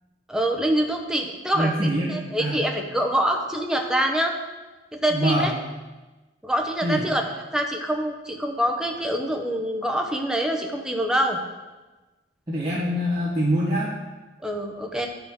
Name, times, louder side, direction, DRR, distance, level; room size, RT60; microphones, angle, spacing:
voice 1, 0.3-1.7 2.1-4.3 4.9-5.5 6.4-7.2 7.5-11.4 14.4-15.1, right 1 dB, 5° right, 2 dB, 0.8 m, -25 dB
voice 2, 1.5-2.7 5.1-5.6 6.8-7.1 12.5-13.9, equal, 20° right, -11 dB, 1.8 m, -24 dB
9.6 x 5.5 x 4.7 m, 1.2 s
head